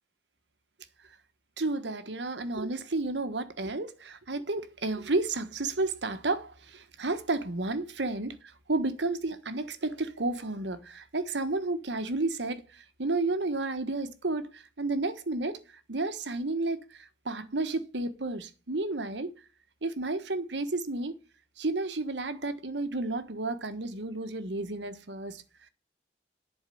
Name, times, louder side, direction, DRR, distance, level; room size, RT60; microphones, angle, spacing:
voice 1, 1.6-19.3 19.8-21.1 21.6-25.7, right 2 dB, 80° right, 1.3 m, -32 dB
11.0 x 4.7 x 7.7 m
head